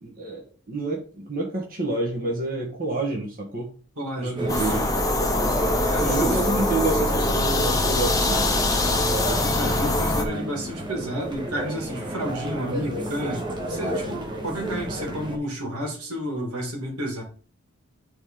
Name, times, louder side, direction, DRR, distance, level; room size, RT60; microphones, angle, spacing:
voice 1, 0.0-3.7 4.2-4.8 6.0-8.5, right 2 dB, 40° right, -1 dB, 1.4 m, -28 dB
voice 2, 4.0-4.8 5.9-6.4 9.4-17.2, equal, 85° right, 0 dB, 2.5 m, -31 dB
sound 1, 4.4-15.4, right 1 dB, 20° right, 1.2 m, -31 dB
sound 2, 4.5-10.2, left 2 dB, 15° left, 0.8 m, -23 dB
9.4 x 3.8 x 3.7 m, 0.41 s
head